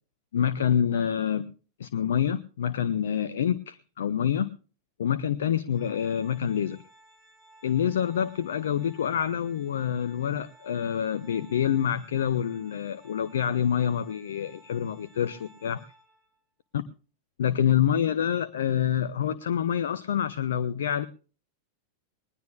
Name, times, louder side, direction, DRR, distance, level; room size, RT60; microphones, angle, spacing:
voice 1, 0.3-1.5 1.8-4.5 5.0-6.8 7.6-15.8 16.7-16.8 17.4-21.1, left 9 dB, 65° left, 15 dB, 0.6 m, -27 dB
Organ, 5.7-16.4, right 1 dB, 10° right, 5.7 m, -57 dB
20.5 x 19.5 x 2.4 m, 0.38 s
figure-of-eight pair, 90°, 0 cm